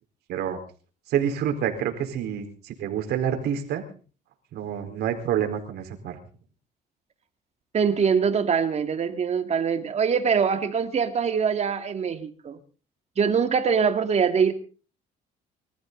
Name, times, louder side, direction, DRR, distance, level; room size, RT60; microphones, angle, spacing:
voice 1, 0.3-0.6 1.1-3.8 4.5-6.2, right 9 dB, 75° right, 5 dB, 4.5 m, -28 dB
voice 2, 7.7-12.6 13.2-14.5, right 6 dB, 40° right, 7 dB, 2.5 m, -23 dB
25.0 x 14.5 x 4.1 m, 0.39 s
cardioid pair, 110°, 17 cm